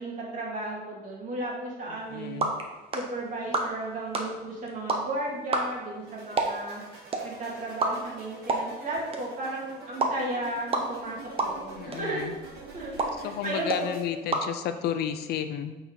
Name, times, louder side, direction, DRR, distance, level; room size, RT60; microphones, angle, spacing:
voice 1, 0.0-2.5 2.9-6.8 7.2-13.9, right 2 dB, 50° right, -3 dB, 2.4 m, -35 dB
voice 2, 1.9-2.5 11.8-12.3 13.2-15.8, left 9 dB, 70° left, 9 dB, 0.6 m, -32 dB
sound 1, 1.9-15.2, right 2 dB, 35° right, 1.0 m, -33 dB
sound 2, 6.0-14.0, right 3 dB, 70° right, 2.4 m, -46 dB
8.2 x 4.5 x 4.0 m, 1.1 s
cardioid pair, 110°, 17 cm